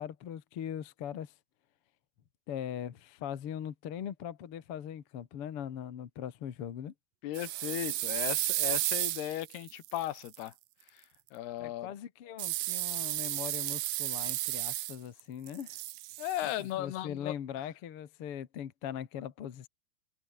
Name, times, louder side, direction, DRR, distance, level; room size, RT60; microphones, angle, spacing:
voice 1, 0.0-1.3 2.5-6.9 11.6-15.8 16.4-19.7, left 9 dB, 50° left, 1.8 m, -40 dB
voice 2, 7.2-10.5 10.9-11.0 11.3-11.9 16.2-17.3, left 14 dB, 85° left, 3.4 m, -36 dB
sound 1, 7.3-10.4 12.4-15.2 15.5-16.5, right 18 dB, 75° right, 2.1 m, -33 dB
omnidirectional pair, 4.5 m